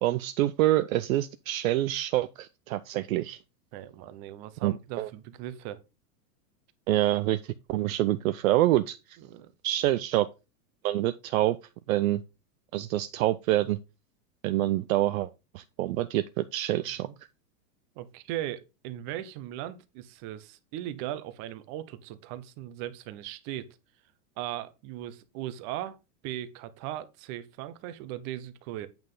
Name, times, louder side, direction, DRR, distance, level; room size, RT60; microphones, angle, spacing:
voice 1, 0.0-3.4 4.6-5.1 6.9-9.2 9.6-10.3 10.8-11.6 11.9-12.2 12.7-13.8 14.4-17.1, right 15 dB, 60° right, 0.6 m, -26 dB
voice 2, 3.7-5.8 9.2-9.5 16.7-17.1 18.0-23.8 24.4-26.0 26.2-28.9, right 13 dB, 35° right, 0.9 m, -38 dB
8.8 x 5.7 x 3.7 m
supercardioid pair, 155°, 48 cm